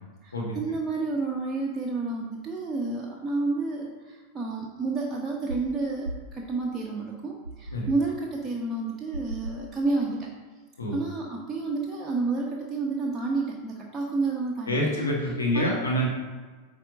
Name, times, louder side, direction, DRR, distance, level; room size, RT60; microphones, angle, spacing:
voice 1, 0.2-10.3 10.9-15.1 15.5-15.7, right 3 dB, 10° right, -3 dB, 1.0 m, -30 dB
sound 1, 5.5-5.7 6.0-6.3 7.4-8.0 9.1-9.7, right 1 dB, 80° right, 0.4 m, -37 dB
voice 2, 14.7-16.1, equal, 75° left, -3 dB, 1.6 m, -26 dB
9.1 x 3.6 x 5.2 m, 1.4 s
figure-of-eight pair, 90°, 0 cm